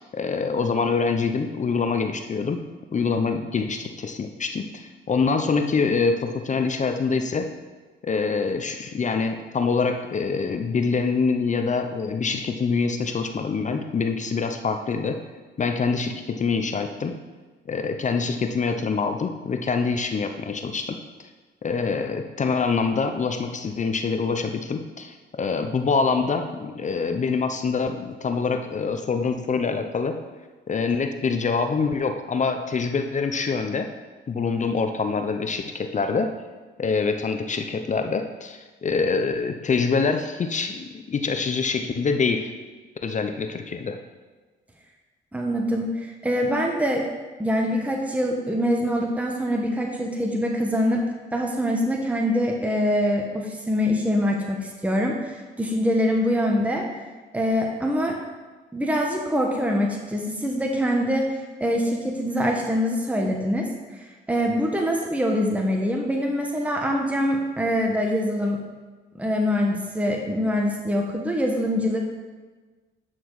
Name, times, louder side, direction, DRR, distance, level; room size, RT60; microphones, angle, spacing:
voice 1, 0.0-2.6 2.9-7.5 8.0-15.2 15.6-17.1 17.7-21.0 21.6-30.2 30.7-33.9 34.3-36.3 36.8-42.5 43.0-44.0, left 4 dB, 40° left, 7 dB, 0.7 m, -25 dB
voice 2, 45.3-47.0 47.4-51.0 51.3-56.8 57.3-58.2 58.7-61.3 61.6-63.7 64.3-68.6 69.2-72.0, equal, 5° right, 1 dB, 1.2 m, -24 dB
9.1 x 6.0 x 4.8 m, 1.3 s
cardioid pair, 90°, 20 cm